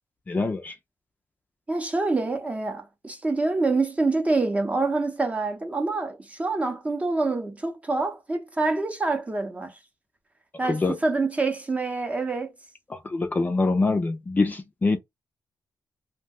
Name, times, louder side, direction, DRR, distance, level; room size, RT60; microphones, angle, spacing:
voice 1, 0.3-0.7 10.7-11.0 12.9-15.0, left 3 dB, 25° left, 0.5 m, -24 dB
voice 2, 1.7-9.8 10.6-12.5, right 3 dB, 20° right, 0.7 m, -26 dB
2.6 x 2.1 x 3.6 m
cardioid pair, 115°, 7 cm